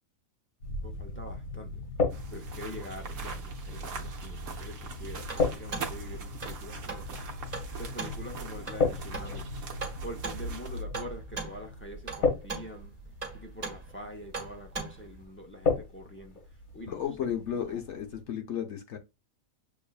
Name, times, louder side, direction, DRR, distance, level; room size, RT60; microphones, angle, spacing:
sound 1, 0.6-18.2, left 4 dB, 85° left, 2.1 m, -35 dB
voice 1, 0.8-1.8 2.3-7.2 7.8-9.5 10.0-12.9 13.3-16.4 16.7-17.3 17.6-17.8, equal, 20° left, 0.3 m, -45 dB
sound 2, 2.1-10.8, right 6 dB, 70° right, 1.1 m, -44 dB
sound 3, 4.8-15.2, right 4 dB, 30° right, 1.3 m, -41 dB
voice 2, 16.9-19.0, left 9 dB, 65° left, 1.0 m, -33 dB
7.0 x 2.4 x 2.3 m
omnidirectional pair, 1.4 m